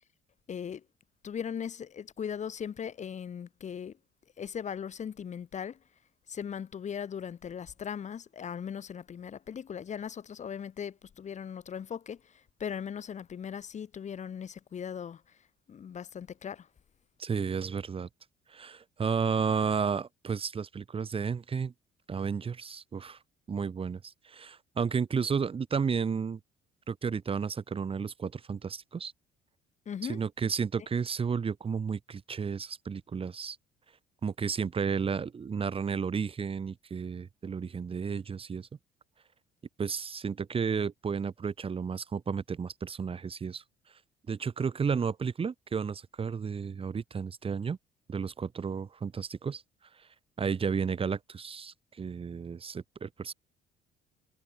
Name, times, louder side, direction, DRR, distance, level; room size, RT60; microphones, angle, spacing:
voice 1, 0.5-0.8 1.2-3.9 4.4-5.8 6.3-12.2 12.6-15.2 15.7-16.7 29.9-30.2, left 8 dB, 45° left, 7.5 m, -38 dB
voice 2, 17.2-18.1 18.5-21.7 22.1-23.2 23.5-26.4 26.9-29.1 30.0-33.6 34.2-38.7 39.8-43.6 44.3-47.8 48.1-49.6 50.0-50.1 50.4-53.3, right 6 dB, 35° right, 3.6 m, -32 dB
cardioid pair, 110°, 17 cm